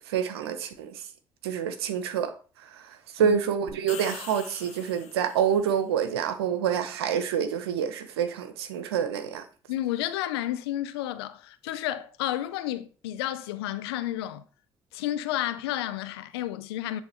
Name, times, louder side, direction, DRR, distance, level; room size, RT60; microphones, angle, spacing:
voice 1, 0.1-1.0 1.4-2.3 3.1-9.4, right 8 dB, 85° right, 0.8 m, -27 dB
sound 1, 3.7-5.6, left 7 dB, 65° left, 1.5 m, -43 dB
voice 2, 9.7-14.4 14.9-17.0, left 13 dB, 85° left, 0.5 m, -31 dB
9.5 x 3.3 x 4.3 m
hypercardioid pair, 45°, 13 cm